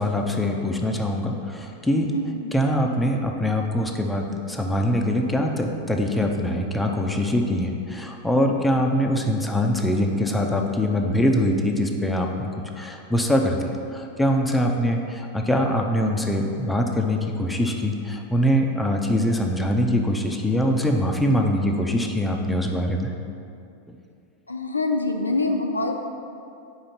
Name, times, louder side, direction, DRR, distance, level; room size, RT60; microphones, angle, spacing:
voice 1, 0.0-2.1 2.5-12.5 12.8-23.1, equal, 5° left, 1 dB, 0.6 m, -23 dB
voice 2, 2.1-2.5 24.5-25.9, left 2 dB, 80° left, 3 dB, 0.5 m, -25 dB
5.1 x 4.7 x 5.7 m, 2.5 s
figure-of-eight pair, 90°, 0 cm